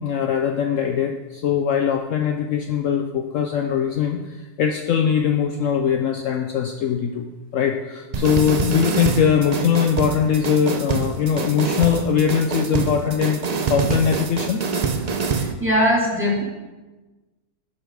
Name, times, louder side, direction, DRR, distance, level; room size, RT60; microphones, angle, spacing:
voice 1, 0.0-4.2 4.6-14.6, left 8 dB, 65° left, 4 dB, 0.9 m, -21 dB
sound 1, 8.1-15.5, right 5 dB, 75° right, 0.3 m, -25 dB
voice 2, 15.4-16.4, equal, 10° right, -5 dB, 2.1 m, -20 dB
7.9 x 5.7 x 6.6 m, 1.2 s
omnidirectional pair, 1.6 m